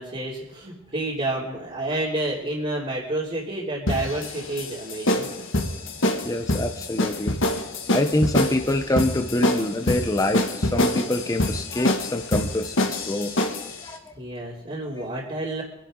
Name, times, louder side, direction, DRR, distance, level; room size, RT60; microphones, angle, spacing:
voice 1, 0.0-5.3 6.0-6.2 14.2-15.6, right 2 dB, 35° right, -6 dB, 3.0 m, -29 dB
sound 1, 3.9-13.7, left 1 dB, 65° left, 1.9 m, -25 dB
voice 2, 6.2-7.4 7.9-12.8 13.1-13.3 13.8-14.1 15.0-15.1, left 1 dB, 15° left, 5 dB, 0.9 m, -25 dB
24.5 x 11.5 x 3.9 m, 0.87 s
head